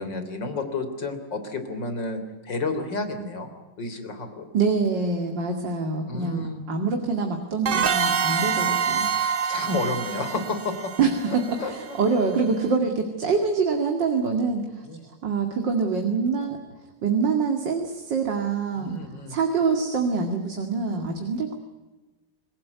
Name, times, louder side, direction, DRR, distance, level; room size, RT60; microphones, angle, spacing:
voice 1, 0.0-3.5 3.8-4.5 6.1-6.6 9.1-10.9 11.3-12.0 14.9-15.0 18.7-19.4, left 3 dB, 80° left, 8 dB, 4.0 m, -31 dB
voice 2, 4.5-9.1 11.0-11.1 11.5-14.9 15.2-16.6 17.0-19.0 19.3-21.5, right 4 dB, 85° right, 4 dB, 3.0 m, -25 dB
sound 1, 7.6-12.2, right 7 dB, 40° right, 0.9 m, -26 dB
26.5 x 17.5 x 9.4 m, 1.2 s
omnidirectional pair, 1.9 m